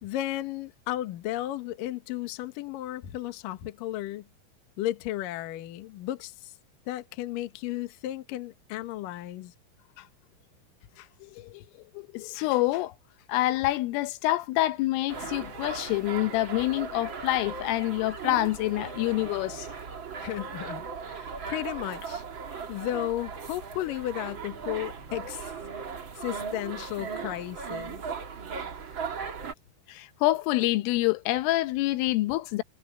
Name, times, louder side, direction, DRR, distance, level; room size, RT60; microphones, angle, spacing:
voice 1, 0.0-4.3 4.8-6.5 6.9-9.5 20.2-25.5 26.2-28.0, left 14 dB, 70° left, 2.2 m, -34 dB
voice 2, 11.2-11.6 12.0-12.9 13.3-19.7 29.9-32.6, left 17 dB, 85° left, 3.5 m, -27 dB
sound 1, 15.1-29.5, right 5 dB, 55° right, 1.3 m, -38 dB
omnidirectional pair, 5.7 m